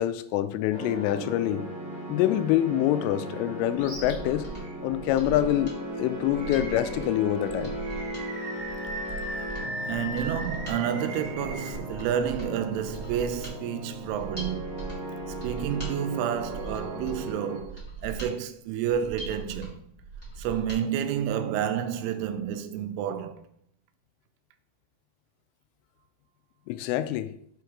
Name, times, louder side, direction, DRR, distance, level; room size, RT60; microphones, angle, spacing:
voice 1, 0.0-1.6 2.1-4.5 4.8-7.7 26.7-27.3, left 13 dB, 85° left, 3.1 m, -26 dB
sound 1, 0.7-17.6, equal, 25° right, 1.6 m, -37 dB
Mechanisms, 3.8-20.8 21.2-21.3, right 4 dB, 25° left, 1.4 m, -41 dB
Animal, 3.8-4.1 4.6-4.7 6.4-7.1 7.8-11.7, right 1 dB, 60° right, 1.8 m, -38 dB
voice 2, 9.9-14.6 15.4-19.8 20.4-23.4, right 9 dB, 85° right, 3.1 m, -30 dB
7.0 x 4.7 x 4.7 m
omnidirectional pair, 5.6 m